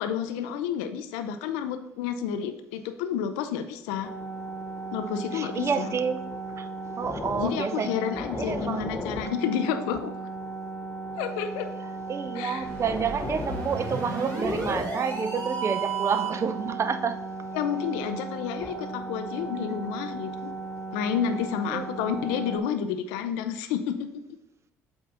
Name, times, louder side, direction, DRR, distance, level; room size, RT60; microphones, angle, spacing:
voice 1, 0.0-4.1 4.9-5.9 7.4-10.1 11.2-11.7 12.3-12.7 17.5-20.5 20.9-24.4, left 8 dB, 80° left, 8 dB, 0.4 m, -30 dB
sound 1, 4.0-22.6, right 2 dB, 30° left, 1.1 m, -36 dB
voice 2, 5.3-6.2 6.6-6.7 7.0-7.9 8.3-8.9 12.1-17.2 21.7-21.9, right 6 dB, 40° right, 10 dB, 0.6 m, -29 dB
sound 2, 12.6-16.5, right 4 dB, 55° right, 2.0 m, -33 dB
7.7 x 2.7 x 5.5 m, 0.88 s
hypercardioid pair, 55°, 7 cm